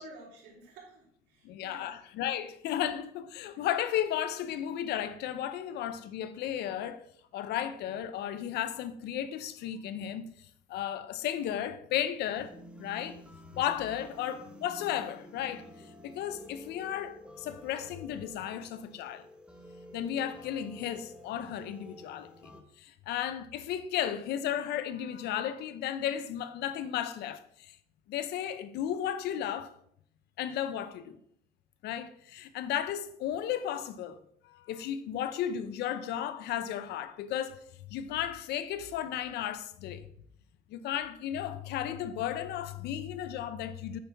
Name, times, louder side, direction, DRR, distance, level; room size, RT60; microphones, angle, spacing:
voice 1, 0.0-1.9 3.5-3.6, right 2 dB, 85° right, 3.2 m, -51 dB
voice 2, 1.4-7.1 7.3-10.3 10.7-13.2 13.5-15.6 16.0-19.3 19.9-22.5 22.8-27.7 28.1-29.7 30.4-31.2 31.8-37.6 37.9-40.1 40.7-44.0, left 10 dB, 80° left, 0.7 m, -34 dB
sound 1, 12.3-22.6, left 1 dB, 5° right, 0.9 m, -51 dB
8.7 x 5.4 x 3.5 m
cardioid pair, 110°, 17 cm